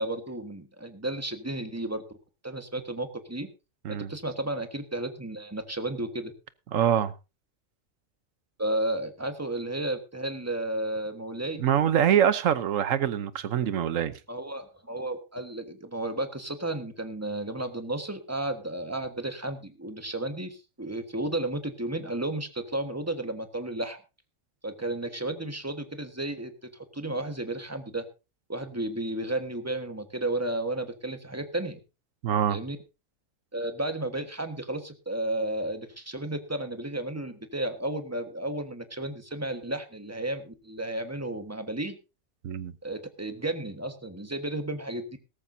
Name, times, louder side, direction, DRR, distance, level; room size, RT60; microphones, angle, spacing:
voice 1, 0.0-2.2 2.4-3.5 3.9-6.3 8.6-11.6 14.3-24.0 24.6-28.0 28.5-31.8 32.5-32.8 33.5-42.0 42.8-45.0, right 1 dB, 10° right, 1.3 m, -33 dB
voice 2, 6.7-7.1 11.6-14.1 32.2-32.6 42.4-42.7, right 9 dB, 70° right, 1.2 m, -24 dB
17.0 x 14.0 x 2.7 m
omnidirectional pair, 1.4 m